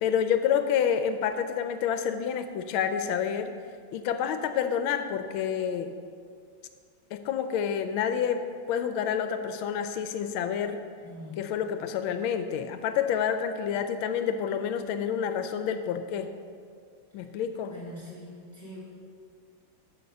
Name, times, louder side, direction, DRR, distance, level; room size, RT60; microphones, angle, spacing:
voice 1, 0.0-3.5 3.9-5.9 7.1-10.8 11.4-16.3 17.1-17.8, left 8 dB, 80° left, 9 dB, 1.4 m, -28 dB
voice 2, 11.0-11.3 17.7-18.8, left 1 dB, 20° left, -9 dB, 1.8 m, -43 dB
6.5 x 6.5 x 6.7 m, 2.1 s
omnidirectional pair, 2.3 m